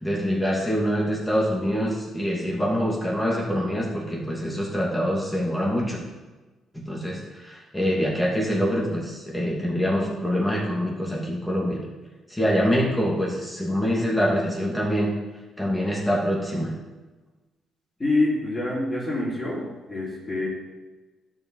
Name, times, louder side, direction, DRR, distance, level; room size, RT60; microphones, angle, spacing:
voice 1, 0.0-6.0 6.7-11.8 12.3-15.1 15.6-16.8, equal, 10° left, -4 dB, 2.5 m, -25 dB
voice 2, 18.0-20.5, left 2 dB, 25° left, -10 dB, 3.6 m, -26 dB
12.5 x 5.3 x 5.6 m, 1.2 s
cardioid pair, 90°, 0 cm